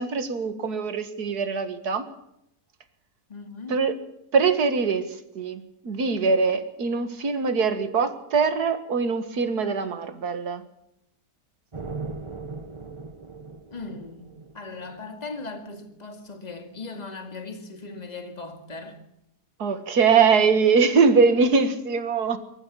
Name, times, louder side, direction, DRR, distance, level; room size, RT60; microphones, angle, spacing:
voice 1, 0.0-2.0 3.7-3.9 4.3-10.6 19.6-22.4, right 5 dB, 75° right, 2.2 m, -22 dB
voice 2, 3.3-3.8 13.7-19.0, left 3 dB, 25° left, 2.2 m, -38 dB
sound 1, 11.7-15.4, right 4 dB, 20° right, 1.0 m, -38 dB
25.0 x 14.0 x 7.4 m
omnidirectional pair, 1.7 m